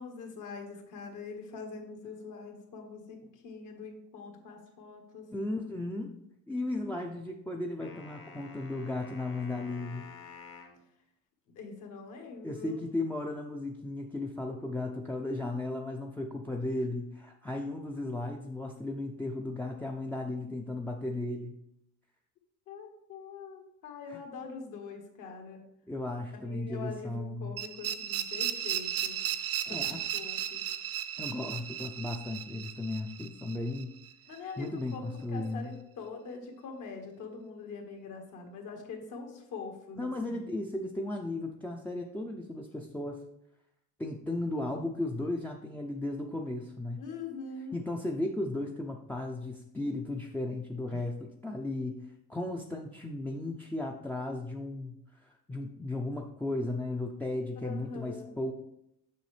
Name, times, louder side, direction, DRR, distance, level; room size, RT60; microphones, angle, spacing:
voice 1, 0.0-3.2 3.4-5.2 11.5-12.8 22.7-25.7 26.3-29.3 29.7-30.7 34.3-40.4 47.0-47.8 57.6-58.3, left 4 dB, 65° left, 2 dB, 1.6 m, -43 dB
voice 2, 5.3-6.1 6.5-10.1 12.4-21.6 24.1-24.2 25.9-27.6 29.7-30.1 31.2-34.0 34.6-35.7 40.0-43.2 44.0-47.0 47.7-52.0 52.3-55.0 55.2-58.5, left 2 dB, 5° left, 1 dB, 0.4 m, -35 dB
sound 1, 7.8-10.8, left 5 dB, 40° left, 1.1 m, -50 dB
sound 2, 27.6-34.4, right 10 dB, 45° right, 0.6 m, -35 dB
6.8 x 5.8 x 3.2 m, 0.80 s
cardioid pair, 120°, 33 cm